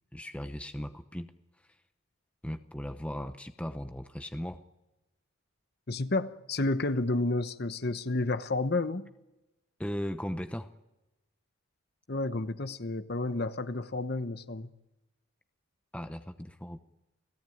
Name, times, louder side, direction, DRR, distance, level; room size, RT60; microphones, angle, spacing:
voice 1, 0.1-1.3 2.4-4.6 9.8-10.7 15.9-16.8, equal, 5° left, 0.8 m, -37 dB
voice 2, 5.9-9.1 12.1-14.7, left 2 dB, 50° left, 1.0 m, -31 dB
29.5 x 17.5 x 9.4 m
head